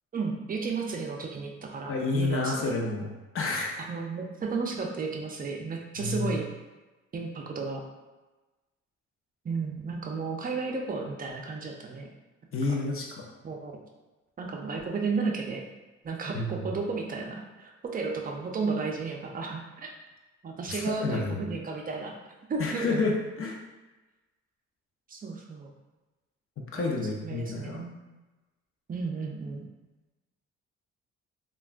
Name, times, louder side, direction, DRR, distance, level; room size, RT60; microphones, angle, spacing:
voice 1, 0.1-2.8 3.8-6.5 7.1-7.8 9.4-12.1 13.4-13.7 14.4-15.6 16.0-19.9 20.4-22.2 22.5-23.0 25.1-25.7 26.8-28.0 28.9-29.7, right 4 dB, 30° right, 1 dB, 0.5 m, -33 dB
voice 2, 1.9-3.1 3.3-3.8 6.0-6.3 12.5-13.2 16.3-16.7 20.7-21.4 22.6-23.6 26.7-27.8, left 3 dB, 45° left, 0 dB, 0.6 m, -29 dB
3.3 x 2.2 x 2.5 m, 1.2 s
cardioid pair, 90°, 30 cm